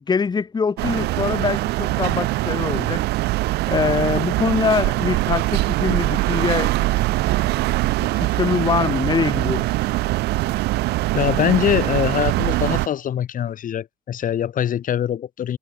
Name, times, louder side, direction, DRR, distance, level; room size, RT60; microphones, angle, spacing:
voice 1, 0.1-3.0 3.7-6.7 8.0-9.7, left 5 dB, 25° left, 1.3 m, -23 dB
sound 1, 0.8-12.9, right 19 dB, 75° right, 0.5 m, -22 dB
voice 2, 11.1-15.6, left 10 dB, 55° left, 2.7 m, -23 dB
cardioid pair, 110°, 17 cm